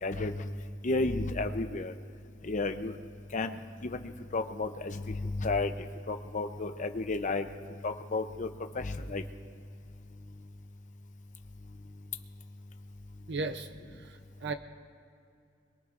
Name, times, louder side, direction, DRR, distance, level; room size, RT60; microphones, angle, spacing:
voice 1, 0.0-0.5 0.8-1.9 2.4-2.9 3.3-3.5 3.8-5.7 6.1-7.5 7.8-8.5 8.8-9.2, left 3 dB, 40° left, 7 dB, 0.6 m, -32 dB
voice 2, 13.3-14.5, right 3 dB, 60° right, 9 dB, 0.6 m, -37 dB
22.5 x 22.0 x 2.5 m, 2.5 s
head